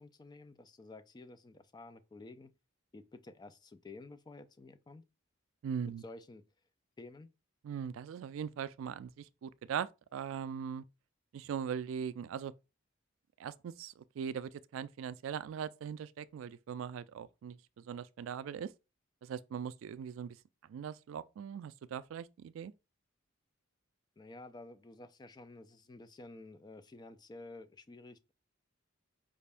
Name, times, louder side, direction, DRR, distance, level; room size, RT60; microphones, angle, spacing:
voice 1, 0.0-2.5 2.9-5.0 5.8-6.4 7.0-7.3 24.2-28.3, left 2 dB, 20° left, 0.3 m, -51 dB
voice 2, 5.6-6.0 7.6-10.8 11.3-12.5 13.4-18.7 19.2-20.4 20.7-22.7, right 7 dB, 70° right, 0.3 m, -40 dB
5.2 x 2.5 x 3.4 m
head